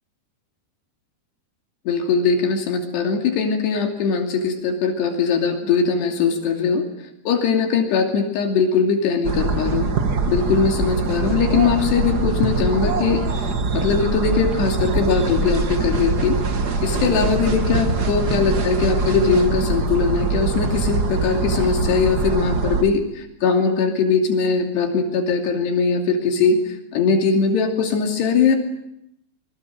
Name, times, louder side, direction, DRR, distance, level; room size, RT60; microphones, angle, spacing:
voice 1, 1.9-6.8 7.3-9.9 10.3-16.4 16.8-26.6 26.9-28.6, left 5 dB, 75° left, 3 dB, 4.8 m, -20 dB
sound 1, 9.2-22.8, right 3 dB, 90° right, 0.8 m, -23 dB
26.5 x 23.5 x 7.6 m, 0.79 s
omnidirectional pair, 4.9 m